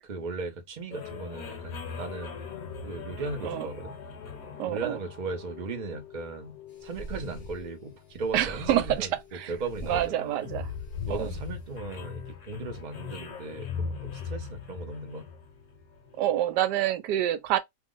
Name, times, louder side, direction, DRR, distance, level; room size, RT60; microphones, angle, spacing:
voice 1, 0.0-2.4 2.8-4.0 4.6-10.4 11.0-15.3, right 3 dB, 55° right, 0.4 m, -37 dB
sound 1, 0.9-16.3, left 6 dB, 65° left, 1.1 m, -40 dB
voice 2, 4.6-5.0 8.3-9.1 9.3-9.5 9.9-10.6 11.1-11.3 16.2-17.6, right 12 dB, 85° right, 1.2 m, -27 dB
sound 2, 6.8-7.6 8.2-9.2 9.5-10.1 10.7-11.5, equal, 40° left, 0.5 m, -41 dB
2.9 x 2.0 x 3.6 m
omnidirectional pair, 1.8 m